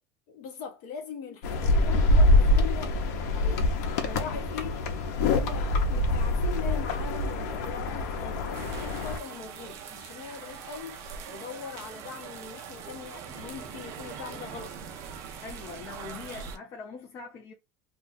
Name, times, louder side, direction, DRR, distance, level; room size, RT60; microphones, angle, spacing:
voice 1, 0.3-14.8, left 7 dB, 50° left, 1.0 m, -41 dB
sound 1, 1.4-9.2, left 2 dB, 90° left, 0.8 m, -25 dB
sound 2, 8.5-16.6, right 7 dB, 35° right, 0.5 m, -42 dB
voice 2, 15.4-17.5, left 5 dB, 30° left, 0.5 m, -42 dB
2.6 x 2.4 x 3.9 m
cardioid pair, 175°, 8 cm